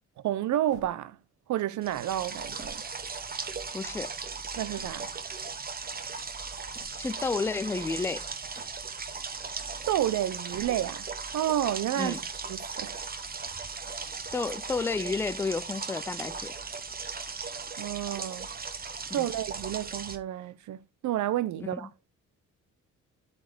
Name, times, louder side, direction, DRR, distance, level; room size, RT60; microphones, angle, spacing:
voice 1, 0.2-1.2 1.5-2.8 4.6-5.1 9.9-11.1 11.3-12.1 12.5-13.0 17.8-18.5 19.1-20.8 21.0-21.9, right 12 dB, 70° right, 0.7 m, -30 dB
sound 1, 0.7-1.5 2.3-3.7 4.3-5.4 6.5-7.2 8.3-9.1 10.3-11.1 12.6-13.6 14.5-15.4 16.6-17.2 17.5-17.6 18.6-19.4, right 1 dB, 15° right, 3.2 m, -55 dB
sound 2, 1.8-20.2, right 5 dB, 30° right, 1.2 m, -37 dB
voice 2, 3.7-4.1 7.0-8.2 12.0-12.2 14.3-16.5 19.2-19.3 21.6-21.8, left 4 dB, 10° left, 0.4 m, -31 dB
7.8 x 4.3 x 5.0 m
cardioid pair, 90°, 30 cm